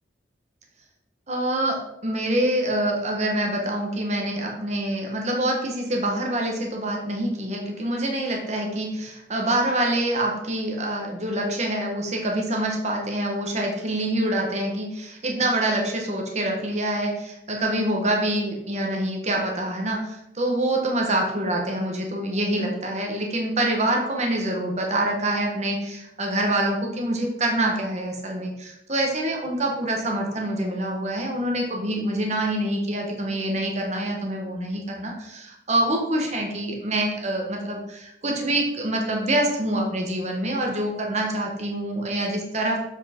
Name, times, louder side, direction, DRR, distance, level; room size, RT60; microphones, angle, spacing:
voice 1, 1.3-1.7 2.0-42.8, right 1 dB, 40° right, 1 dB, 1.2 m, -26 dB
7.3 x 4.8 x 4.4 m, 0.82 s
head